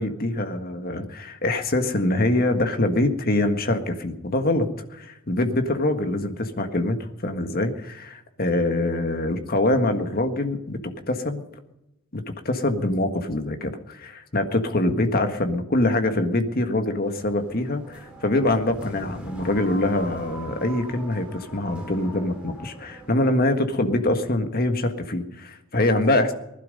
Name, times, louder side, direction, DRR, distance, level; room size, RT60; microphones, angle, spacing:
voice 1, 0.0-7.0 7.2-10.8 11.1-11.4 12.1-26.3, left 1 dB, 45° left, 7 dB, 1.7 m, -24 dB
sound 1, 17.0-23.3, right 1 dB, 5° right, 4.1 m, -41 dB
19.5 x 12.0 x 5.4 m, 0.87 s
head